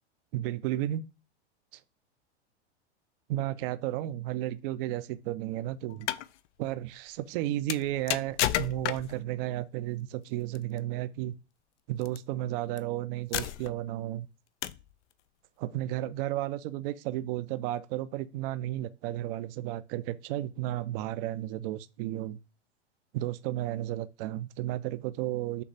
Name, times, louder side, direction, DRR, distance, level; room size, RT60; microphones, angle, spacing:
voice 1, 0.3-1.1 1.7-1.8 3.3-6.1 6.6-11.3 11.9-14.3 15.6-22.4 23.1-25.6, right 14 dB, 50° right, 0.5 m, -33 dB
sound 1, 5.9-6.3 7.7-9.2 10.5-10.8 12.0-12.2 12.8-12.9 13.3-13.9 14.6-14.9, left 13 dB, 80° left, 0.5 m, -31 dB
6.6 x 2.4 x 3.3 m
hypercardioid pair, 110°, 35 cm